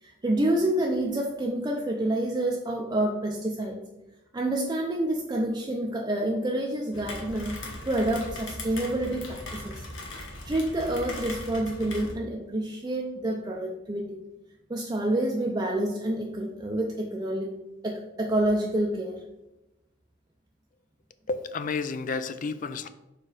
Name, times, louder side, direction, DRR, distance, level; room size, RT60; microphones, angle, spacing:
voice 1, 0.0-3.8 4.3-9.8 10.1-14.2 14.7-17.6 17.8-19.2, right 1 dB, 20° right, 0 dB, 0.5 m, -28 dB
Rain, 6.9-12.1, left 1 dB, 80° left, 1.5 m, -39 dB
voice 2, 21.3-22.9, left 4 dB, 40° left, 12 dB, 0.4 m, -31 dB
5.8 x 4.6 x 4.8 m, 0.97 s
head